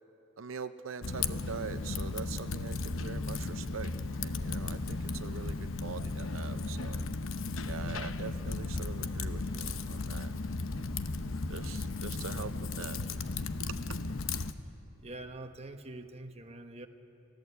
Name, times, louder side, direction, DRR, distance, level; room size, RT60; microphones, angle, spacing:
voice 1, 0.4-3.9 4.2-5.6 5.8-7.0 7.7-10.3 11.5-13.0 13.6-14.0, right 6 dB, 80° right, 10 dB, 0.6 m, -43 dB
Typing, 1.0-14.5, left 3 dB, 80° left, 0.8 m, -35 dB
sound 1, 3.4-3.5 4.3-4.6 5.0-5.1 6.0-6.2 6.6-6.7 7.7-7.9 8.2-8.3 9.2-9.5 9.9-10.0 10.9-11.1 11.5-11.7, left 2 dB, 50° left, 1.4 m, -45 dB
voice 2, 15.0-16.9, right 2 dB, 30° right, 6 dB, 1.1 m, -45 dB
29.5 x 16.0 x 8.2 m, 2.9 s
head